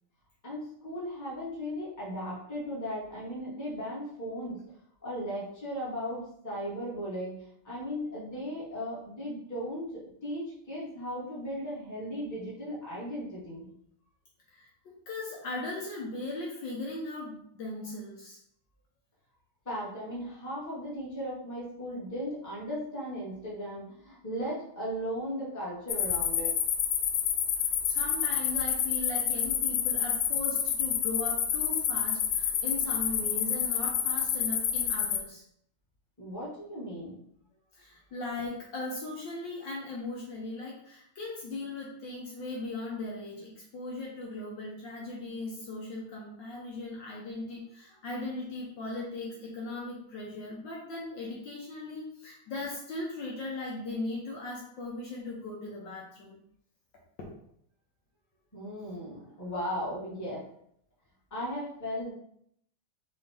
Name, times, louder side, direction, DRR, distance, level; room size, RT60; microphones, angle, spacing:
voice 1, 0.4-4.6 5.0-13.7 19.6-26.5 36.2-37.2 58.5-60.4 61.3-62.1, equal, 10° left, -7 dB, 1.3 m, -37 dB
voice 2, 14.5-18.4 27.8-35.4 37.7-56.4, left 2 dB, 65° left, -3 dB, 1.5 m, -38 dB
sound 1, 25.9-35.2, left 8 dB, 90° left, 1.6 m, -29 dB
5.4 x 2.8 x 3.5 m, 0.69 s
omnidirectional pair, 2.4 m